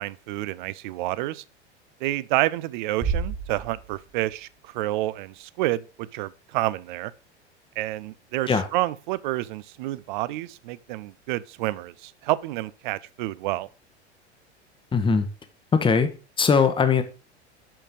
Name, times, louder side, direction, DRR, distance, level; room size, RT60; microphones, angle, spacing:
voice 1, 0.0-1.4 2.0-7.1 7.8-13.7, right 17 dB, 45° right, 0.5 m, -29 dB
sound 1, 3.0-4.4, right 5 dB, 20° right, 1.6 m, -30 dB
voice 2, 14.9-15.3 15.8-16.1 16.4-17.0, left 5 dB, 15° left, 1.0 m, -20 dB
6.6 x 6.0 x 4.9 m
figure-of-eight pair, 80°, 34 cm